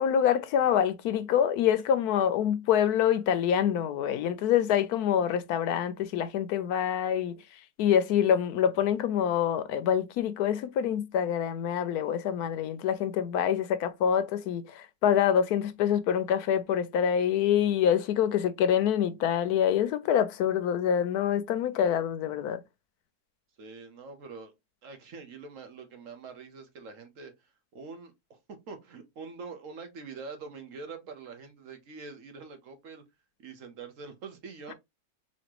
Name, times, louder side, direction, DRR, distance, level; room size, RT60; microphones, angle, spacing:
voice 1, 0.0-7.3 7.8-22.6, left 9 dB, 80° left, 1.1 m, -26 dB
voice 2, 23.6-24.5 24.8-28.4 28.7-33.0 33.4-34.7, right 4 dB, 60° right, 1.2 m, -44 dB
4.2 x 2.9 x 2.9 m
omnidirectional pair, 1.6 m